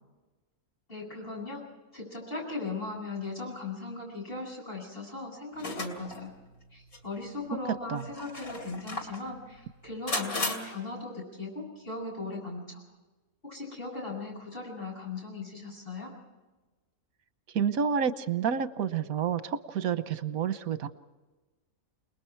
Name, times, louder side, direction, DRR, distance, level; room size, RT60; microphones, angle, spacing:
voice 1, 0.9-1.6 1.9-6.3 6.7-12.8 13.4-16.1, left 3 dB, 40° left, -2 dB, 8.4 m, -38 dB
sound 1, 5.6-6.2 6.9-7.0 8.0-9.2 10.1-10.5, left 2 dB, 90° left, 3.3 m, -34 dB
voice 2, 17.5-20.9, right 7 dB, 85° right, 12 dB, 1.4 m, -29 dB
29.0 x 20.5 x 4.6 m, 1.2 s
omnidirectional pair, 1.5 m